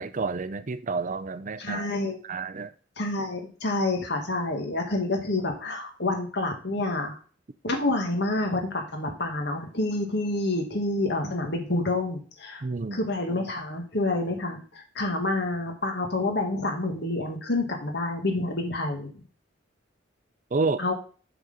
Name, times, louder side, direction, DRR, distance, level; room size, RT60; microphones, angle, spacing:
voice 1, 0.0-1.9 2.2-2.7 12.6-13.0 20.5-20.8, right 4 dB, 40° right, 0.5 m, -29 dB
voice 2, 1.6-2.2 3.0-7.2 7.6-12.6 12.9-19.2 20.8-20.9, left 2 dB, 60° left, 1.8 m, -28 dB
7.7 x 4.1 x 6.6 m
head